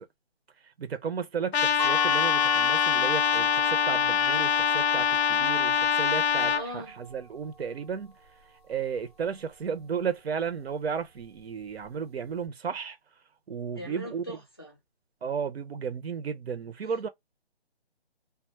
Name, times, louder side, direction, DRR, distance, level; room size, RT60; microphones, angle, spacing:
voice 1, 0.8-8.2 8.7-13.0 13.5-14.4 15.2-17.1, right 6 dB, 70° right, 0.6 m, -34 dB
Trumpet, 1.5-6.6, left 7 dB, 75° left, 0.5 m, -24 dB
sound 1, 1.8-7.6, left 5 dB, 25° right, 0.6 m, -35 dB
voice 2, 6.3-6.9 13.7-14.8, equal, 25° left, 0.4 m, -40 dB
2.2 x 2.0 x 2.8 m
hypercardioid pair, 165°, 32 cm